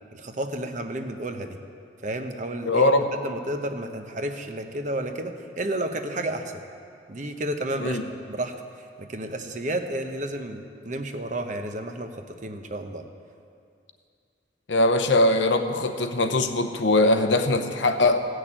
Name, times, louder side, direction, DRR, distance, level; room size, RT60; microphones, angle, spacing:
voice 1, 0.1-1.6 2.0-6.6 7.1-8.0 8.3-13.0, right 1 dB, 40° right, 6 dB, 0.8 m, -32 dB
voice 2, 2.7-3.1 7.8-8.0 14.7-18.2, left 2 dB, 75° left, 7 dB, 0.8 m, -21 dB
15.5 x 6.5 x 8.7 m, 2.4 s
head